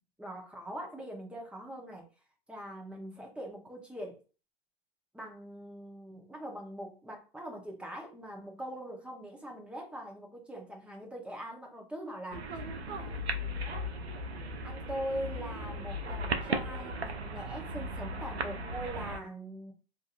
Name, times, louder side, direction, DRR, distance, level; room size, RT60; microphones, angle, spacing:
voice 1, 0.2-2.1 2.5-4.2 5.1-12.5 12.8-13.2 14.6-19.7, right 1 dB, 5° right, 0.7 m, -42 dB
sound 1, 12.3-19.2, right 1 dB, 90° right, 0.6 m, -36 dB
2.6 x 2.5 x 2.4 m
hypercardioid pair, 110°, 32 cm